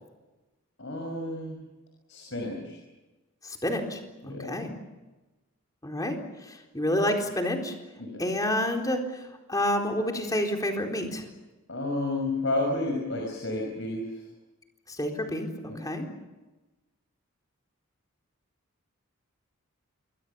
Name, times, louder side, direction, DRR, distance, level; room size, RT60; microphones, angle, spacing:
voice 1, 0.8-1.6 2.1-2.8 4.2-4.5 8.0-8.2 11.7-14.0 15.7-15.8, left 2 dB, 60° left, 1 dB, 6.2 m, -31 dB
voice 2, 3.4-4.7 5.8-6.2 6.5-7.7 8.2-9.0 9.5-11.2 15.0-16.1, left 1 dB, 15° left, 3 dB, 4.0 m, -29 dB
28.0 x 23.5 x 7.0 m, 1.1 s
head